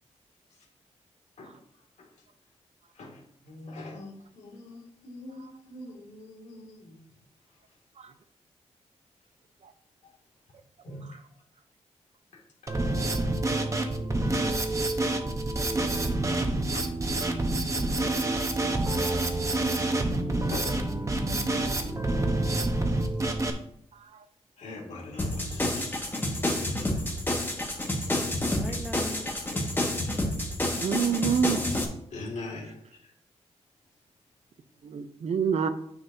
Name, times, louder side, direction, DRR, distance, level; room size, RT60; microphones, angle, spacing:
voice 1, 2.9-7.0 10.0-10.1 10.8-11.2 12.3-12.8 16.7-17.0 17.6-17.7 19.3-19.4 20.5-20.8 22.8-22.9 24.6-27.2 28.5-28.7 29.5-29.6 32.1-33.1, left 2 dB, 80° left, -1 dB, 2.4 m, -43 dB
Drum kit, 12.7-23.5, right 2 dB, 25° right, 1.0 m, -27 dB
voice 2, 20.3-22.1 28.5-29.5, equal, ahead, 4 dB, 1.0 m, -42 dB
sound 1, 25.2-31.8, left 1 dB, 15° left, 1.7 m, -29 dB
voice 3, 30.7-31.6 34.8-35.7, right 7 dB, 70° right, 9 dB, 0.7 m, -27 dB
9.5 x 6.2 x 2.8 m, 0.66 s
wide cardioid pair, 100°, 12 cm